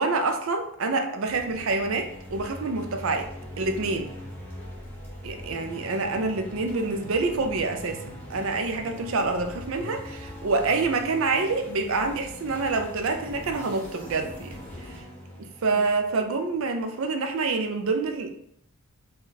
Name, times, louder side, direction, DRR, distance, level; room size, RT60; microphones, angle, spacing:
voice 1, 0.0-3.3 3.6-4.1 5.2-14.5 14.8-14.9 15.4-18.4, right 3 dB, 65° right, 5 dB, 0.5 m, -27 dB
sound 1, 1.2-16.7, equal, 10° left, 0.9 m, -41 dB
4.1 x 2.3 x 4.0 m, 0.70 s
head